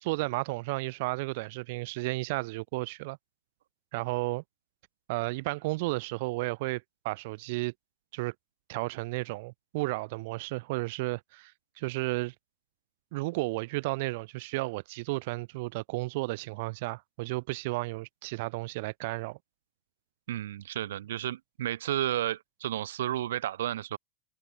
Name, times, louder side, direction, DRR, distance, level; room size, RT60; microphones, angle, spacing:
voice 1, 0.0-3.2 3.9-4.4 5.1-7.7 8.1-8.3 8.7-11.5 11.8-12.3 13.1-19.4, right 23 dB, 60° right, 2.0 m, -33 dB
voice 2, 20.3-24.0, right 12 dB, 90° right, 1.7 m, -32 dB
supercardioid pair, 135°, 0 cm